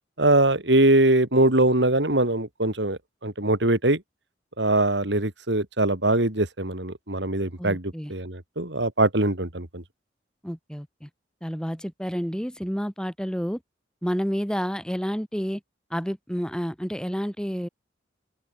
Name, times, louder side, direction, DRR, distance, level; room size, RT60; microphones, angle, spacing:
voice 1, 0.2-4.0 4.6-9.8, right 2 dB, 75° right, 3.5 m, -22 dB
voice 2, 7.6-8.1 10.4-11.1 11.4-13.6 14.0-15.6 15.9-17.7, equal, 5° left, 6.4 m, -30 dB
open air
head